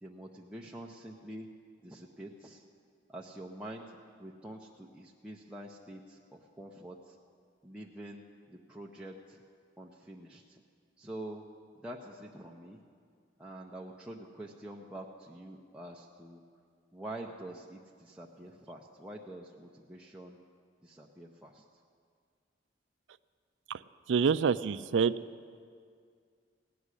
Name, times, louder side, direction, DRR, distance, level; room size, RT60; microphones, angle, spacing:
voice 1, 0.0-1.5 1.8-2.7 3.1-7.2 7.6-8.2 8.5-9.4 9.8-10.6 11.0-11.4 11.8-12.8 13.4-16.4 16.9-20.4 20.8-21.6, right 1 dB, 5° right, -3 dB, 0.7 m, -46 dB
voice 2, 24.1-25.1, right 6 dB, 80° right, 15 dB, 0.4 m, -27 dB
17.0 x 6.2 x 9.8 m, 2.1 s
head